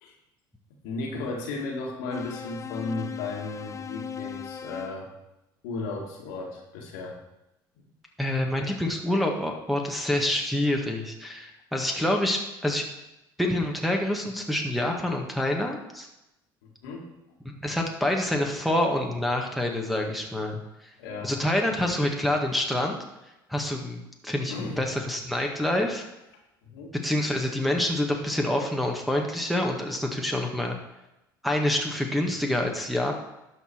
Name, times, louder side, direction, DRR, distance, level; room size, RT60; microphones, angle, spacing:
voice 1, 0.8-5.1 5.6-7.2 8.6-8.7 16.6-17.1 21.0-21.3 24.5-24.8 26.6-26.9, left 3 dB, 75° left, 0 dB, 1.9 m, -35 dB
sound 1, 2.1-5.0, left 7 dB, 25° left, 0.6 m, -38 dB
voice 2, 8.2-12.8 13.4-16.1 17.6-20.6 21.2-23.0 23.5-26.0 27.0-30.8 31.4-33.2, left 1 dB, ahead, 0 dB, 1.6 m, -27 dB
12.0 x 4.7 x 4.5 m, 0.93 s
hypercardioid pair, 70°, 11 cm